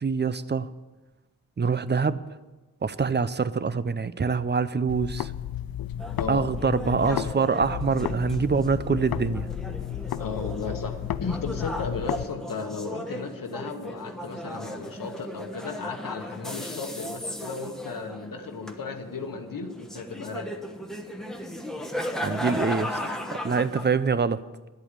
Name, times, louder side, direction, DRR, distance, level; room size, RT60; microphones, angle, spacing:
voice 1, 0.0-0.7 1.6-2.2 2.8-5.3 6.3-9.5 22.2-23.0 23.4-24.4, right 5 dB, 30° right, 15 dB, 0.5 m, -25 dB
sound 1, 4.9-7.3 7.6-12.3, left 11 dB, 90° left, 0.5 m, -33 dB
sound 2, 6.0-23.9, equal, ahead, 1.1 m, -36 dB
voice 2, 6.2-6.5 7.0-7.3 10.2-20.6, left 4 dB, 70° left, 5 dB, 1.0 m, -35 dB
11.0 x 8.2 x 8.7 m, 1.2 s
wide cardioid pair, 120°, 35 cm